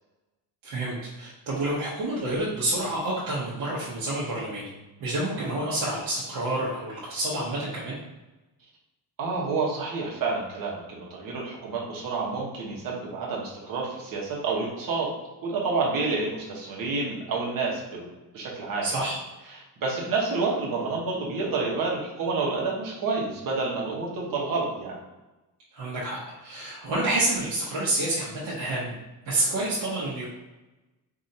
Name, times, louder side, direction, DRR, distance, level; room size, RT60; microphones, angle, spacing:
voice 1, 0.6-4.7 5.0-8.0 18.8-19.2 25.7-29.0 29.2-30.3, right 1 dB, 80° right, -8 dB, 1.1 m, -28 dB
voice 2, 9.2-15.1 15.4-18.0 18.3-19.1 19.5-25.0, right 3 dB, 55° right, -3 dB, 1.2 m, -29 dB
4.8 x 2.7 x 2.7 m, 1.1 s
cardioid pair, 165°, 41 cm